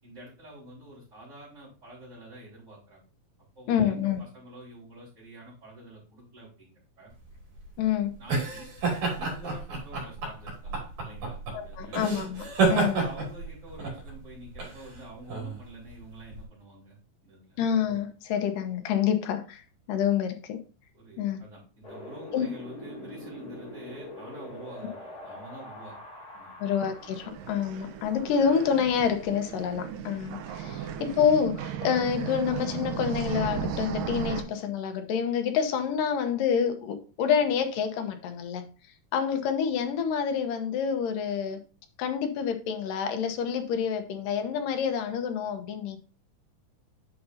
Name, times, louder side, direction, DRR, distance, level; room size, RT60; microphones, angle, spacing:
voice 1, 0.0-3.0 3.5-7.1 8.2-8.7 9.2-12.0 12.8-17.0 17.2-17.6 20.9-25.9 26.3-26.5, right 1 dB, 20° right, -12 dB, 4.7 m, -47 dB
voice 2, 3.7-4.2 7.8-8.1 11.5-13.0 17.6-20.6 21.2-21.4 22.3-22.5 24.8-24.9 26.6-38.6 39.1-41.6 42.0-46.0, left 7 dB, 85° left, 6 dB, 2.7 m, -27 dB
sound 1, 7.2-16.4, right 4 dB, 60° right, 4.0 m, -30 dB
Wind, 21.8-27.3, left 1 dB, 30° left, 2.7 m, -43 dB
sound 2, 26.9-34.4, right 8 dB, 85° right, 2.5 m, -35 dB
8.5 x 6.8 x 2.7 m, 0.35 s
omnidirectional pair, 3.8 m